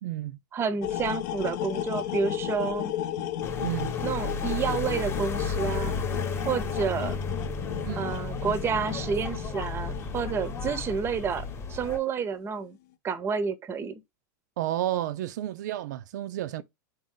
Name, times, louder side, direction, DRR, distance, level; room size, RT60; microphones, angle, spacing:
voice 1, 0.0-0.4 3.6-4.0 7.8-8.0 14.6-16.6, right 13 dB, 75° right, 0.4 m, -31 dB
voice 2, 0.5-2.9 4.0-6.0 6.4-7.2 8.0-12.8 13.0-14.0, right 6 dB, 25° right, 0.6 m, -30 dB
sound 1, 0.8-11.8, left 11 dB, 65° left, 0.7 m, -34 dB
sound 2, 3.4-12.0, left 3 dB, 25° left, 1.0 m, -33 dB
4.0 x 2.7 x 3.6 m
hypercardioid pair, 115°, 10 cm